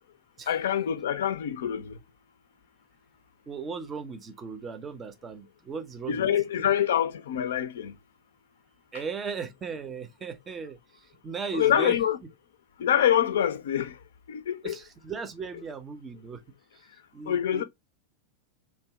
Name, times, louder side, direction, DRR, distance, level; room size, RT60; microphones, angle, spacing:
voice 1, 0.5-1.9 6.1-7.9 11.5-12.2 12.8-13.9 14.3-14.8 17.3-17.6, left 10 dB, 60° left, 0.4 m, -25 dB
voice 2, 3.5-6.6 8.9-12.0 14.6-16.4 16.7-17.6, right 5 dB, 20° right, 0.5 m, -37 dB
2.8 x 2.2 x 3.3 m
figure-of-eight pair, 90°, 0 cm